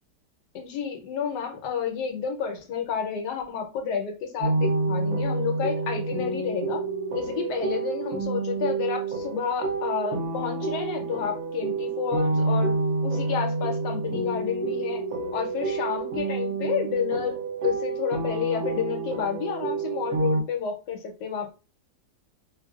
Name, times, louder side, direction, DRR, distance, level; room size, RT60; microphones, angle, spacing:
voice 1, 0.5-6.8 7.1-12.8 13.0-15.0 15.3-21.5, left 7 dB, 80° left, 1.4 m, -30 dB
sound 1, 4.4-20.4, right 3 dB, 70° right, 1.0 m, -28 dB
4.5 x 2.3 x 2.3 m
omnidirectional pair, 1.8 m